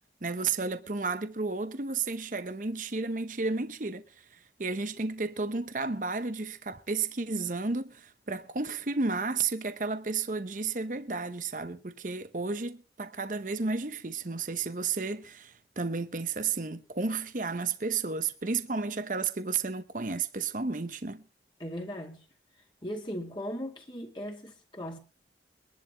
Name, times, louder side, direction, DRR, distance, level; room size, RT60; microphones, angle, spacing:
voice 1, 0.2-21.2, right 4 dB, 45° right, 0.9 m, -32 dB
voice 2, 21.6-22.2 22.8-25.0, equal, 25° left, 2.1 m, -38 dB
23.5 x 11.5 x 3.0 m
head